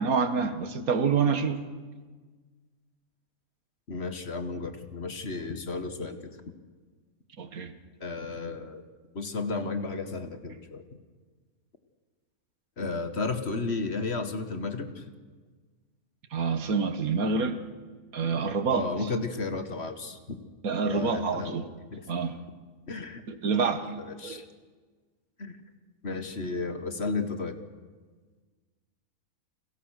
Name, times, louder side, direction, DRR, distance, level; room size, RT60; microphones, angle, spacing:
voice 1, 0.0-1.6 7.4-7.7 16.3-17.6 18.1-18.9 20.6-21.7 22.1-22.4 23.3-24.4, right 5 dB, 75° right, 10 dB, 1.9 m, -27 dB
voice 2, 3.9-6.4 8.0-8.8 9.1-10.8 12.8-15.0 18.7-20.4 20.9-21.6 21.9-22.0 22.9-23.2 23.6-23.7 24.0-24.5 25.4-25.6 26.0-27.6, left 3 dB, 45° left, 8 dB, 1.8 m, -33 dB
30.0 x 21.5 x 6.5 m, 1.4 s
omnidirectional pair, 1.5 m